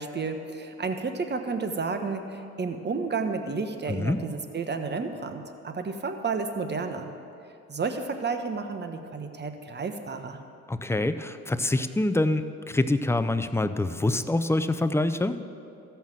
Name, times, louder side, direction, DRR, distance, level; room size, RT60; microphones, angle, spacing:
voice 1, 0.0-7.1 7.7-10.4, right 4 dB, 35° right, 7 dB, 1.1 m, -31 dB
voice 2, 3.9-4.2 10.7-15.4, left 2 dB, 10° left, 11 dB, 0.5 m, -25 dB
13.5 x 5.8 x 7.6 m, 2.5 s
cardioid pair, 75°, 30 cm